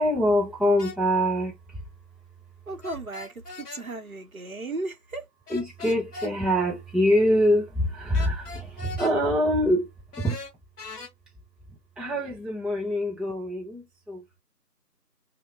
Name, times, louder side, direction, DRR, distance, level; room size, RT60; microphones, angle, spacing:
voice 1, 0.0-1.5 5.5-8.5 8.8-9.9 10.2-10.4 12.0-13.8 14.1-14.2, equal, ahead, 0.5 m, -24 dB
sound 1, 0.8-1.0 2.8-3.8 5.5-6.3 8.1-9.2 10.1-11.1, left 4 dB, 70° left, 0.8 m, -40 dB
voice 2, 2.7-3.3 3.7-5.2, right 2 dB, 60° right, 0.7 m, -35 dB
2.2 x 2.0 x 3.0 m
figure-of-eight pair, 180°, 48 cm